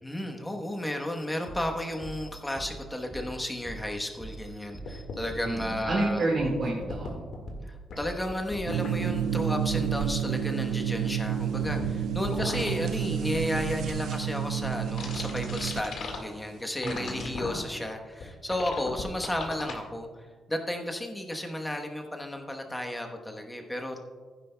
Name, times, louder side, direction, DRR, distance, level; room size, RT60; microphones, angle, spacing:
voice 1, 0.0-6.2 7.7-24.0, left 1 dB, 10° left, 3 dB, 1.0 m, -33 dB
sound 1, 1.5-10.2, right 3 dB, 20° right, 2.5 m, -43 dB
sound 2, 4.8-5.3 6.8-7.5 7.9-8.0 8.3-8.9 11.6-11.9 12.2-12.7 13.3-13.8 15.0-16.2 16.8-17.6 18.2-18.3 18.5-19.7, left 4 dB, 60° left, 1.7 m, -37 dB
voice 2, 5.4-7.3 16.8-17.3, right 2 dB, 45° right, -3 dB, 1.8 m, -29 dB
sound 3, 8.7-15.8, right 8 dB, 65° right, 0.4 m, -30 dB
15.0 x 10.0 x 2.2 m, 1.5 s
cardioid pair, 160°, 0 cm